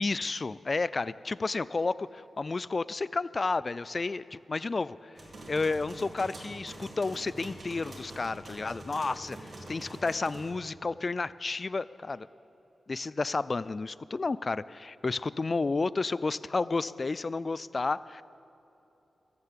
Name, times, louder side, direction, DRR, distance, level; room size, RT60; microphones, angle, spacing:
voice 1, 0.0-5.0 5.5-12.3 12.9-18.2, left 3 dB, 50° left, 18 dB, 0.3 m, -31 dB
sound 1, 5.2-10.5, right 1 dB, 60° right, 2.6 m, -45 dB
14.5 x 7.7 x 7.5 m, 3.0 s
supercardioid pair, 40°, 0 cm